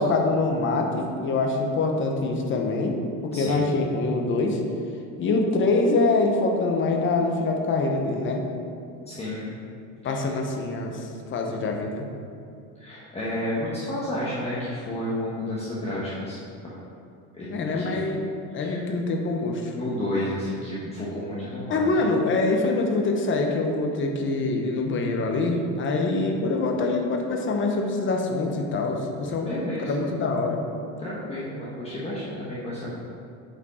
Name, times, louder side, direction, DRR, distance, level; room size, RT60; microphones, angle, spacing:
voice 1, 0.0-3.0 3.2-4.6 5.2-8.5 10.0-12.1 17.5-19.7 21.7-29.5 29.8-30.6, left 3 dB, 30° left, 2 dB, 1.0 m, -25 dB
voice 2, 9.1-9.6 10.0-10.2 12.8-16.8 17.3-17.9 18.6-18.8 19.7-21.8 29.4-30.1 31.0-33.0, left 1 dB, 15° left, -8 dB, 1.2 m, -31 dB
8.5 x 5.1 x 4.3 m, 2.5 s
cardioid pair, 140°, 38 cm